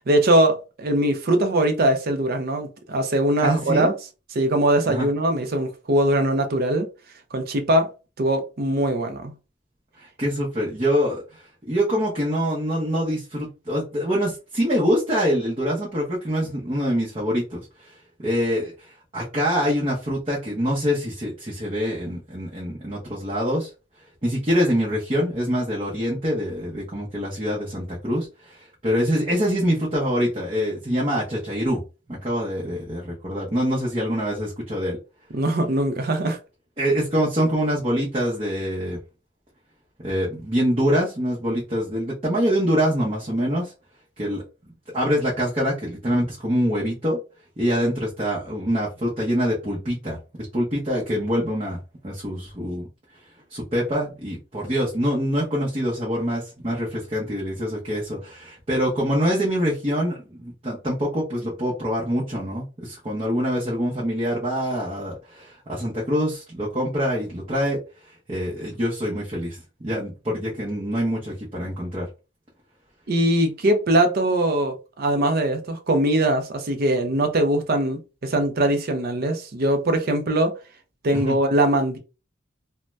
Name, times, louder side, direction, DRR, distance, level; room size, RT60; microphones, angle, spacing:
voice 1, 0.1-3.9 4.3-6.9 7.3-7.9 8.2-9.3 35.3-36.4 73.1-80.5 81.0-82.0, right 1 dB, 50° right, 0.6 m, -21 dB
voice 2, 3.4-3.9 4.9-5.1 10.0-17.9 18.2-18.7 19.1-23.7 24.2-31.8 32.1-35.0 36.8-39.0 40.0-43.7 44.2-44.4 44.9-47.2 47.6-51.8 52.0-52.8 53.5-67.8 68.3-72.1 81.1-81.3, equal, 30° right, 0.8 m, -25 dB
2.6 x 2.1 x 3.2 m
head